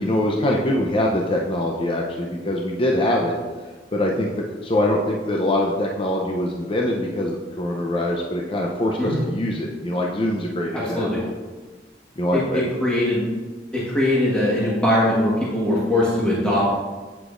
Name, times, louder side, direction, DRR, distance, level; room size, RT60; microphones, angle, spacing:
voice 1, 0.0-3.3 3.9-4.3 4.6-11.1 12.2-12.6, left 1 dB, 30° left, 0 dB, 0.6 m, -23 dB
voice 2, 10.7-11.2 12.3-13.2 13.7-16.8, left 1 dB, 5° left, -8 dB, 1.4 m, -21 dB
8.2 x 7.9 x 2.5 m, 1.3 s
head